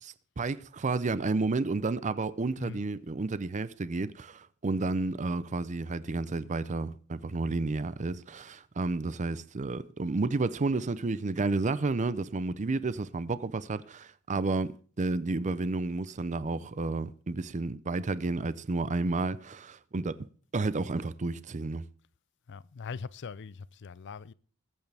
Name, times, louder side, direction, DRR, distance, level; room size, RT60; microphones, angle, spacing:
voice 1, 0.0-20.2 20.5-21.8, right 3 dB, 35° right, 0.5 m, -31 dB
voice 2, 22.5-24.3, left 5 dB, 55° left, 0.5 m, -41 dB
21.5 x 8.1 x 3.4 m
head